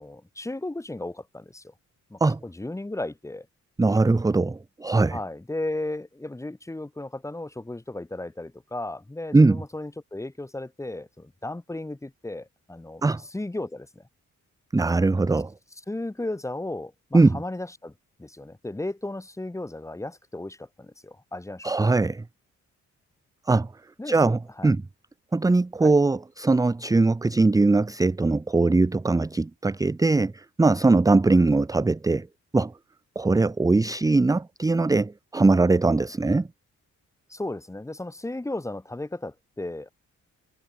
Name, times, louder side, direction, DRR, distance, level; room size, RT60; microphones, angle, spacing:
voice 1, 0.0-1.7 2.1-3.5 5.1-14.0 15.9-17.9 18.2-21.7 24.0-24.2 24.6-24.7 25.8-25.9 37.3-39.9, left 2 dB, 10° left, 1.7 m, -35 dB
voice 2, 3.8-5.2 9.3-9.6 13.0-13.2 14.7-15.5 17.1-17.4 21.6-22.2 23.5-23.7 24.1-24.8 25.3-32.3 32.5-32.7 33.2-36.5, right 3 dB, 10° right, 0.7 m, -21 dB
wide cardioid pair, 140°, 30 cm